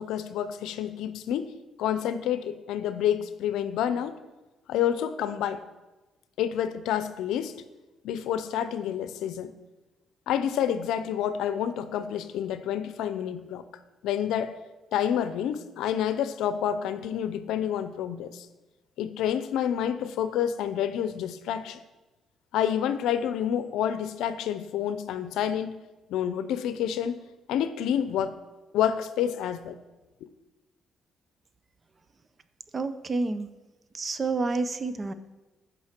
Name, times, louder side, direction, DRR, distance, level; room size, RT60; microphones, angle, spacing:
voice 1, 0.0-1.5 1.8-4.2 4.7-5.6 6.4-7.6 8.0-9.5 10.3-13.6 14.0-14.6 14.9-18.5 19.0-21.8 22.5-25.8 26.1-27.2 27.5-28.4 28.7-29.7, left 9 dB, 90° left, 12 dB, 0.6 m, -28 dB
voice 2, 32.7-33.5 33.9-35.1, right 3 dB, 35° right, 12 dB, 0.7 m, -29 dB
14.5 x 5.5 x 4.5 m, 1.1 s
cardioid pair, 90°, 0 cm